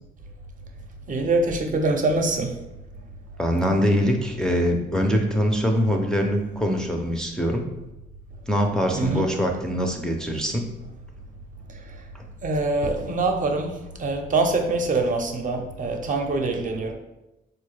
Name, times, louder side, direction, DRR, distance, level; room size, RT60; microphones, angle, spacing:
voice 1, 1.1-2.6 8.9-9.3 12.4-16.9, right 2 dB, 40° right, 4 dB, 0.6 m, -24 dB
voice 2, 3.4-7.6 8.5-10.7 12.1-12.2, equal, 5° left, 1 dB, 0.4 m, -23 dB
4.1 x 2.2 x 3.2 m, 0.95 s
cardioid pair, 90°, 20 cm